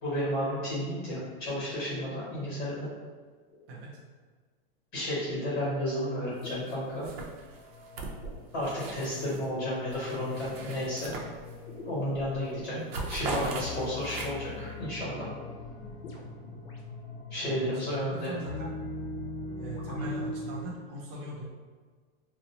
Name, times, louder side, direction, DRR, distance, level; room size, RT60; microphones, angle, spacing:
voice 1, 0.0-2.9 4.9-7.1 8.5-11.1 11.8-15.2 17.3-18.3 20.0-20.1, equal, 40° left, -8 dB, 1.1 m, -32 dB
sound 1, 3.5-3.8 6.4-20.6, left 2 dB, 85° left, 0.6 m, -42 dB
sound 2, 6.4-6.7 7.0-9.5 9.9-11.8 12.1-12.4 12.6-14.6, right 3 dB, 80° right, 0.6 m, -39 dB
voice 2, 17.4-18.7 19.6-21.4, equal, 25° right, -4 dB, 0.4 m, -40 dB
2.5 x 2.0 x 2.8 m, 1.5 s
supercardioid pair, 175°, 29 cm